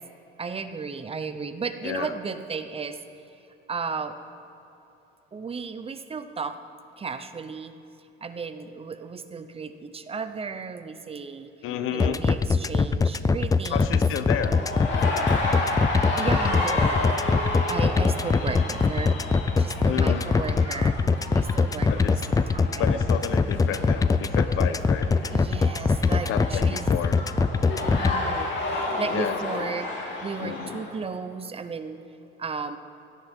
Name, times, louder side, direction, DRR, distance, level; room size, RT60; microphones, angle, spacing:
voice 1, 0.4-3.0 3.7-4.2 5.3-6.6 7.0-7.7 8.2-11.5 11.9-14.0 16.2-17.0 17.7-21.0 21.3-23.0 25.3-26.9 27.9-29.9 30.2-32.0 32.4-32.8, right 5 dB, 30° right, 10 dB, 0.7 m, -34 dB
voice 2, 1.8-2.2 11.6-12.2 13.7-14.5 19.9-20.3 21.9-22.1 22.8-25.1 26.3-27.2 29.1-29.7 30.4-30.8, left 9 dB, 85° left, 10 dB, 0.9 m, -31 dB
sound 1, 12.0-28.1, left 4 dB, 15° left, 0.3 m, -22 dB
sound 2, 14.3-30.9, left 2 dB, 60° left, 3.1 m, -32 dB
18.0 x 14.0 x 3.6 m, 2.9 s
cardioid pair, 115°, 21 cm